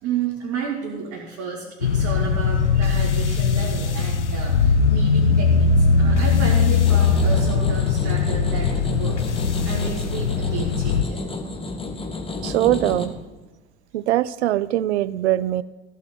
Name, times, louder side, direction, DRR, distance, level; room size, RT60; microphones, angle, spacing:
voice 1, 0.0-11.2, right 5 dB, 50° right, -3 dB, 2.4 m, -31 dB
sound 1, 1.8-11.0, left 5 dB, 85° left, 0.7 m, -20 dB
sound 2, 6.8-13.1, left 2 dB, 15° left, 1.6 m, -31 dB
voice 2, 12.4-13.1 13.9-15.6, right 14 dB, 75° right, 19 dB, 0.5 m, -21 dB
15.0 x 5.5 x 7.5 m, 1.2 s
figure-of-eight pair, 55°, 34 cm